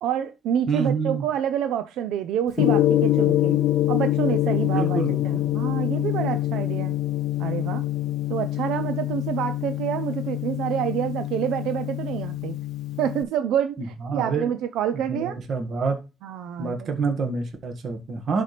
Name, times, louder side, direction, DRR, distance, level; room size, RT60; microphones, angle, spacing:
voice 1, 0.0-3.6 3.9-7.0 7.4-7.8 8.3-12.6 13.0-15.4 16.2-16.9, right 9 dB, 90° right, 0.5 m, -28 dB
voice 2, 0.7-1.2 4.7-5.4 14.0-14.5 14.9-16.0 16.6-18.4, right 4 dB, 60° right, 1.7 m, -27 dB
Gong, 2.6-13.2, left 14 dB, 80° left, 0.4 m, -25 dB
11.0 x 4.3 x 3.4 m
cardioid pair, 90°, 0 cm